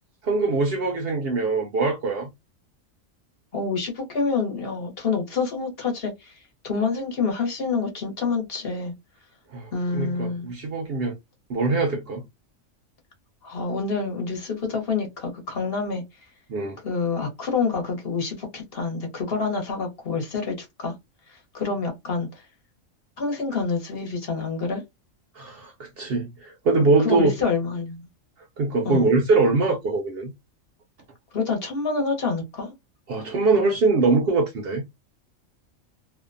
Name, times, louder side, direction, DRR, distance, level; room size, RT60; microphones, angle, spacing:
voice 1, 0.2-2.3 9.5-11.1 11.5-12.2 16.5-16.8 25.3-27.3 28.6-30.3 33.1-34.8, right 3 dB, 60° right, 0.6 m, -23 dB
voice 2, 3.5-6.3 6.6-8.9 9.7-10.5 13.4-16.0 16.8-20.9 21.3-22.4 23.2-24.8 26.8-28.0 28.8-29.1 31.3-32.7, left 4 dB, 50° left, 1.0 m, -27 dB
2.6 x 2.1 x 2.4 m
omnidirectional pair, 1.3 m